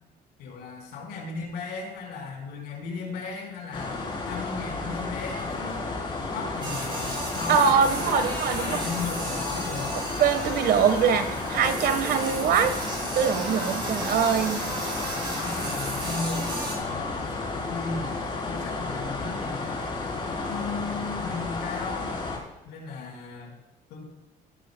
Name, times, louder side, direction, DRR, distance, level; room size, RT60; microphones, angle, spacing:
voice 1, 0.4-5.9 6.2-8.3 8.6-10.0 15.3-19.8 20.3-22.2 22.6-23.5 23.9-24.0, left 4 dB, 85° left, 0 dB, 4.8 m, -36 dB
sound 1, 3.7-22.4, left 3 dB, 30° left, 3.7 m, -32 dB
sound 2, 6.6-16.8, right 2 dB, 30° right, 4.6 m, -35 dB
voice 2, 7.5-8.8 10.2-12.7 13.1-14.7 15.0-15.1, right 6 dB, 65° right, 10 dB, 1.3 m, -23 dB
17.0 x 13.0 x 2.3 m, 1.0 s
cardioid pair, 110°, 17 cm